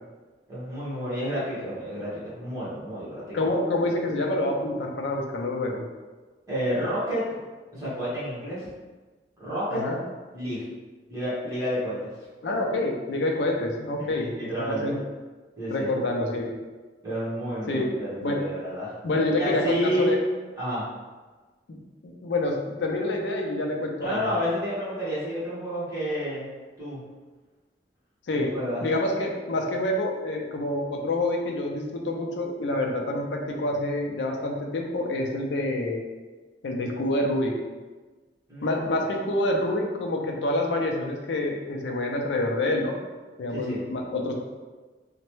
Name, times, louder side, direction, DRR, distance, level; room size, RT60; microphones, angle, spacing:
voice 1, 0.5-3.5 6.5-7.2 7.7-8.7 9.4-9.8 10.3-10.6 11.1-12.1 13.9-15.0 15.6-15.9 17.0-18.9 19.4-20.2 20.6-20.9 24.0-26.5 26.8-27.0 28.3-28.8 38.5-38.8 43.5-43.8, equal, 20° right, -10 dB, 1.2 m, -30 dB
voice 2, 3.3-5.9 9.7-10.0 12.4-15.0 15.7-16.5 17.7-17.9 18.2-18.4 19.0-20.2 21.7-21.8 22.0-24.3 28.3-28.5 28.8-36.0 36.6-37.5 38.6-42.9 43.4-44.3, left 1 dB, 75° left, 0 dB, 0.5 m, -27 dB
3.0 x 2.1 x 3.1 m, 1.3 s
head